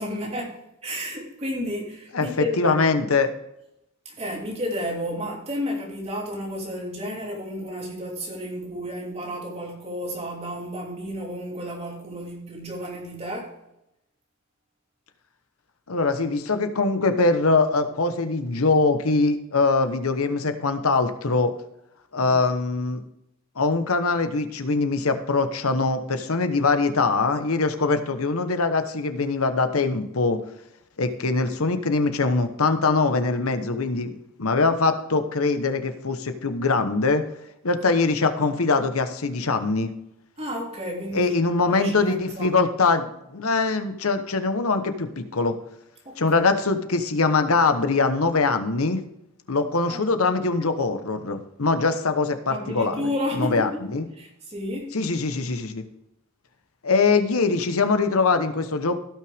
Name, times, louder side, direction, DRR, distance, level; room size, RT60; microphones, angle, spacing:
voice 1, 0.0-2.8 4.0-13.5 22.2-22.3 28.5-28.6 40.4-41.3 41.7-42.5 46.0-46.4 49.9-50.4 52.5-53.8 54.1-54.9, equal, 30° right, -2 dB, 2.9 m, -32 dB
voice 2, 2.1-3.3 15.9-21.5 22.1-23.0 23.6-30.4 31.0-34.1 34.4-37.2 37.6-39.9 41.1-45.6 46.2-49.0 49.5-53.0 53.3-54.0 54.9-55.8 56.8-59.0, left 3 dB, 90° left, 8 dB, 1.1 m, -22 dB
16.5 x 5.8 x 3.5 m, 0.84 s
head